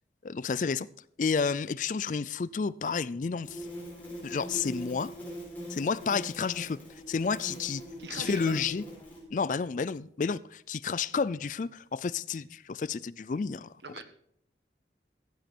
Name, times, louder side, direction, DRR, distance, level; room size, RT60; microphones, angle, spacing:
voice 1, 0.2-0.9 1.2-3.6 4.2-5.1 5.7-6.8 7.1-7.8 8.1-8.8 9.3-13.7, left 5 dB, 45° left, 0.4 m, -30 dB
sound 1, 3.4-9.2, equal, 10° left, 4.7 m, -42 dB
voice 2, 8.0-8.6 13.8-14.0, right 2 dB, 75° right, 1.5 m, -40 dB
15.0 x 9.1 x 4.4 m
head